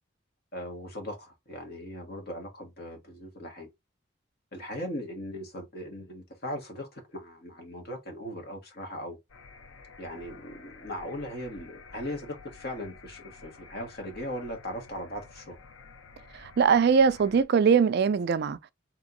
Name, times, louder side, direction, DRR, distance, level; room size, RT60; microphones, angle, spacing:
voice 1, 0.5-3.7 4.5-9.2 10.0-15.6, equal, 50° left, 1.6 m, -39 dB
sound 1, 9.3-17.4, left 4 dB, 85° left, 0.7 m, -51 dB
voice 2, 16.3-18.6, right 6 dB, 55° right, 0.3 m, -22 dB
3.5 x 3.0 x 3.8 m
head